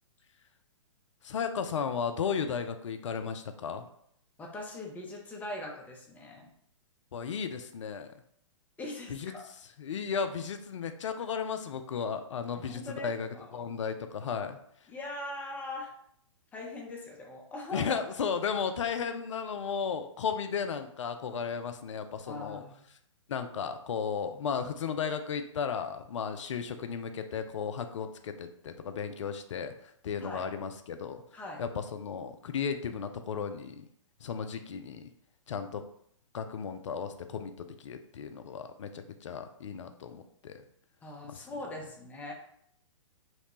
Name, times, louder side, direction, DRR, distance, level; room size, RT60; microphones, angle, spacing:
voice 1, 1.2-3.9 7.1-8.2 9.1-9.3 9.8-14.9 17.7-22.6 23.3-31.2 31.6-33.9 34.2-35.1 35.5-35.8 36.3-40.6 41.3-41.5, left 6 dB, 70° left, 8 dB, 0.4 m, -35 dB
voice 2, 4.4-6.5 8.8-9.1 12.6-13.1 13.3-13.4 14.9-15.9 16.5-18.0 22.3-22.8 30.2-30.4 31.3-31.6 41.0-42.3, left 2 dB, 10° left, -1 dB, 0.5 m, -41 dB
2.9 x 2.1 x 2.9 m, 0.69 s
figure-of-eight pair, 120°, 16 cm